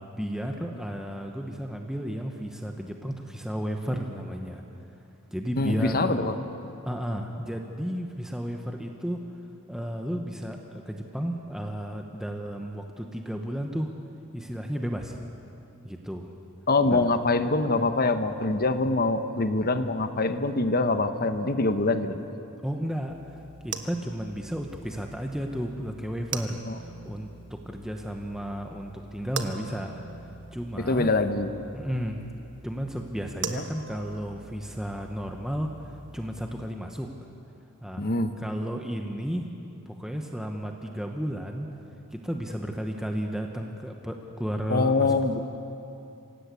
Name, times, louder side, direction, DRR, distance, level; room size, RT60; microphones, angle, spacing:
voice 1, 0.0-4.6 5.3-6.3 6.8-9.2 9.7-13.9 14.3-15.2 15.8-16.3 16.8-17.1 22.6-31.1 31.7-32.2 32.6-37.1 37.8-39.5 39.9-41.7 42.1-45.2, equal, ahead, 2 dB, 1.1 m, -33 dB
voice 2, 5.6-6.3 16.7-22.2 26.7-26.8 30.9-31.5 38.0-38.3 44.7-45.5, left 3 dB, 45° left, 9 dB, 1.1 m, -24 dB
sound 1, 23.1-36.7, right 5 dB, 55° right, 1.3 m, -42 dB
27.0 x 17.0 x 8.3 m, 2.8 s
head